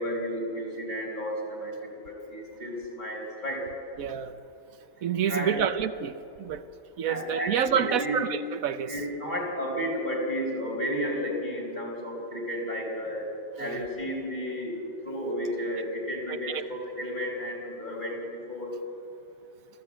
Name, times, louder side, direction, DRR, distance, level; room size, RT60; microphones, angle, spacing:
voice 1, 0.0-3.7 5.3-5.7 7.0-8.2 8.9-13.3 13.6-14.8 15.0-18.7, equal, 35° left, -1 dB, 5.1 m, -32 dB
voice 2, 4.0-4.4 5.0-6.1 6.4-6.6 7.0-8.9 13.6-13.8 16.3-16.6, right 8 dB, 80° right, 11 dB, 1.3 m, -28 dB
25.5 x 15.0 x 8.6 m, 2.7 s
omnidirectional pair, 1.5 m